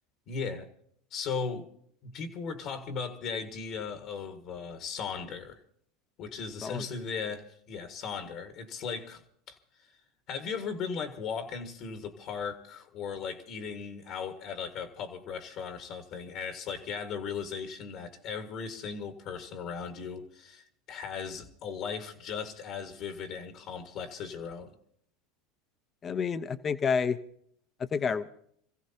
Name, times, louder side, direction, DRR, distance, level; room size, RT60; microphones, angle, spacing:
voice 1, 0.3-0.7 1.1-1.7 2.0-5.6 6.2-9.2 9.5-9.6 10.3-24.7, left 6 dB, 55° left, 1.9 m, -37 dB
voice 2, 26.0-27.2 27.8-28.3, left 6 dB, 30° left, 1.0 m, -29 dB
27.5 x 15.5 x 2.9 m
hypercardioid pair, 90°, 0 cm